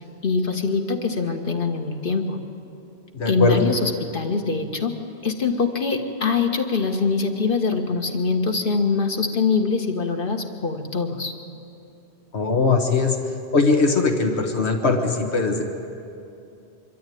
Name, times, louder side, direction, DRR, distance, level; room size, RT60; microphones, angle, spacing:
voice 1, 0.2-2.4 3.2-5.0 5.2-11.3, left 4 dB, 55° left, 4 dB, 1.7 m, -23 dB
voice 2, 3.1-3.6 12.3-13.2 13.5-15.6, left 3 dB, 80° left, 4 dB, 1.8 m, -20 dB
25.0 x 13.0 x 9.3 m, 2.6 s
omnidirectional pair, 1.1 m